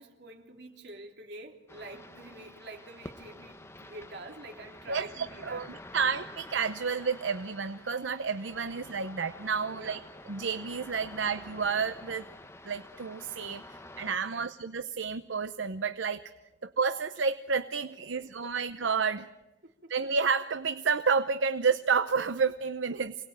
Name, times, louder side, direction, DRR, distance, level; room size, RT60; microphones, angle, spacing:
voice 1, 0.0-6.0 9.7-10.1 14.2-14.5 18.1-18.6 19.8-19.9, right 2 dB, 65° right, 3.5 m, -47 dB
sound 1, 1.7-14.2, left 1 dB, 15° left, 1.1 m, -49 dB
voice 2, 4.9-10.0 10.3-12.3 12.7-13.6 14.0-16.2 16.6-19.3 19.9-23.1, right 5 dB, 80° right, 0.8 m, -30 dB
27.0 x 19.5 x 9.0 m
head